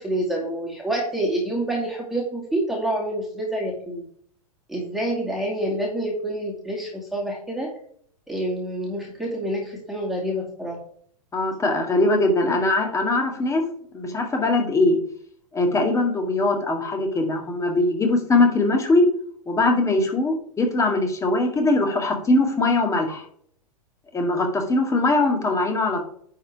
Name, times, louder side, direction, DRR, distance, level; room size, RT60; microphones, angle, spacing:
voice 1, 0.0-4.0 4.7-7.7 8.3-10.8, right 1 dB, ahead, -3 dB, 2.5 m, -27 dB
voice 2, 11.3-13.6 13.9-15.0 15.5-19.0 19.5-23.3 24.1-26.0, left 2 dB, 15° left, 3 dB, 2.1 m, -21 dB
10.5 x 4.3 x 4.8 m, 0.62 s
hypercardioid pair, 105°, 19 cm